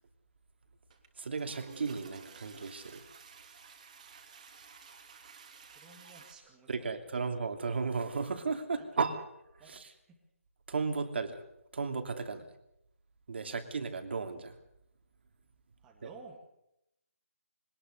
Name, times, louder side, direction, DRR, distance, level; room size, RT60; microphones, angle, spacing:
Toilet flush, 0.9-1.1 1.3-6.3, right 6 dB, 30° right, 2.9 m, -53 dB
voice 1, 1.2-3.0 6.7-9.2 9.5-9.9 10.7-11.4 11.7-12.5 13.3-14.6 16.0-16.1, right 4 dB, 45° right, 7 dB, 2.9 m, -35 dB
voice 2, 5.8-7.0 8.7-8.9 9.6-10.2 12.3-12.4 13.4-13.6 15.8-16.5, right 4 dB, 10° right, 0 dB, 2.1 m, -54 dB
24.0 x 19.0 x 6.8 m, 0.81 s
hypercardioid pair, 170°, 8 cm